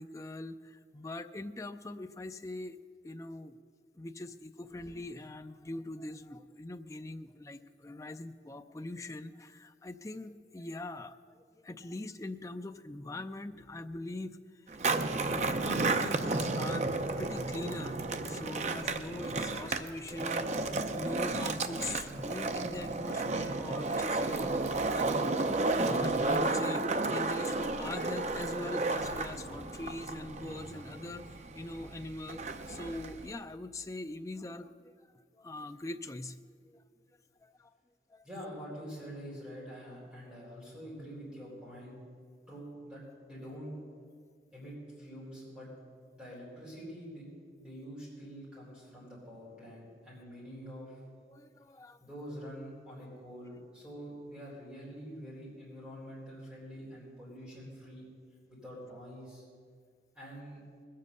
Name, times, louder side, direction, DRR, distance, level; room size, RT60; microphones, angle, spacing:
voice 1, 0.0-2.8 3.0-3.6 3.9-11.2 11.6-14.4 14.7-14.8 15.3-20.6 20.9-25.3 25.7-31.3 31.5-34.9 35.4-36.4 36.7-36.8 37.4-37.7 38.1-38.2 51.3-52.0, left 2 dB, 20° left, 8 dB, 0.4 m, -42 dB
Skateboard, 14.7-33.3, right 3 dB, 40° right, 0.6 m, -32 dB
voice 2, 38.2-42.0 42.5-43.7 44.5-45.7 46.1-47.3 47.6-51.0 52.0-58.1 58.5-59.4 60.1-60.6, equal, 5° right, -7 dB, 3.8 m, -46 dB
20.5 x 7.5 x 6.7 m, 2.1 s
head